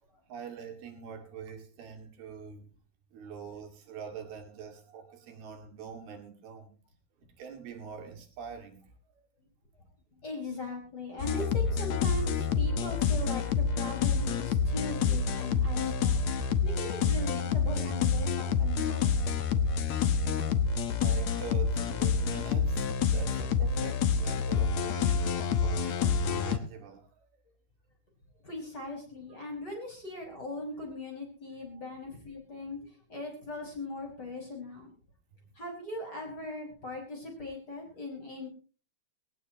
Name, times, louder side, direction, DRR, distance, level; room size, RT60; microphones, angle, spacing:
voice 1, 0.3-2.7 3.1-6.8 7.4-9.2 20.9-26.1 26.4-27.3 29.3-29.5 31.7-31.8, right 6 dB, 70° right, 4 dB, 4.0 m, -45 dB
voice 2, 10.1-19.4 28.4-34.9 35.6-38.5, left 2 dB, 25° left, 0 dB, 5.8 m, -40 dB
sound 1, 11.2-26.6, left 5 dB, 65° left, 1.8 m, -28 dB
18.5 x 18.5 x 2.9 m, 0.36 s
omnidirectional pair, 4.6 m